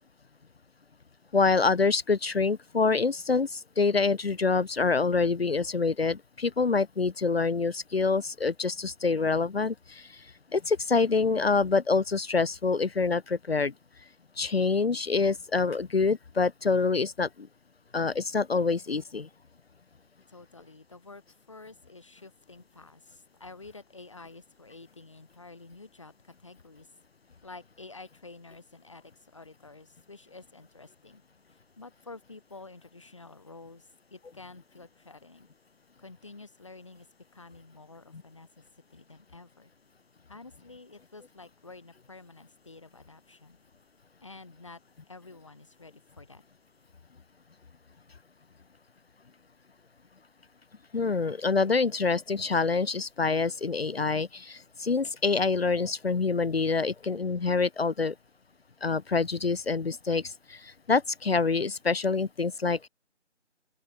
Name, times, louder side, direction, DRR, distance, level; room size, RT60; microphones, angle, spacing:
voice 1, 1.3-10.1 10.5-13.7 14.4-17.5 17.9-19.3 50.9-58.1 58.8-62.9, left 4 dB, 55° left, 0.6 m, -26 dB
voice 2, 20.3-26.9 27.4-31.2 31.5-35.5 36.0-37.1 37.3-38.6 38.9-39.7 40.3-43.6 44.2-44.8 45.1-46.4, left 3 dB, 25° left, 1.6 m, -49 dB
open air
figure-of-eight pair, 175°, 36 cm